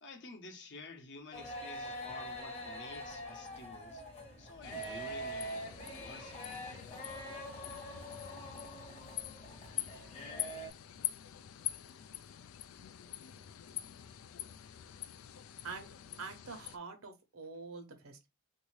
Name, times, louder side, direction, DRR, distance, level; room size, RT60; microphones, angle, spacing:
voice 1, 0.0-4.0 4.4-6.4, left 3 dB, 55° left, 0.8 m, -51 dB
sound 1, 1.3-10.7, equal, 30° left, 0.9 m, -44 dB
sound 2, 4.6-16.8, left 13 dB, 90° left, 0.4 m, -45 dB
voice 2, 15.6-18.3, right 4 dB, 80° right, 1.0 m, -46 dB
3.5 x 2.7 x 3.2 m
head